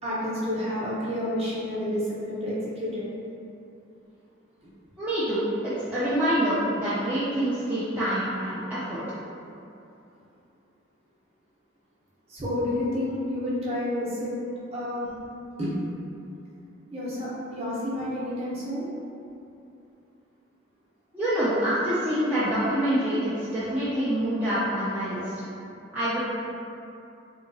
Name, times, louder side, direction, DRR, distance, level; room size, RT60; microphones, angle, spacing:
voice 1, 0.0-3.0 4.6-4.7 12.3-14.3 14.7-15.0 15.6-15.7 16.9-18.9, left 1 dB, 30° right, -8 dB, 0.7 m, -30 dB
voice 2, 5.0-9.0 21.1-25.3 25.9-26.2, right 1 dB, 10° right, -13 dB, 0.4 m, -26 dB
3.4 x 2.8 x 2.6 m, 2.7 s
head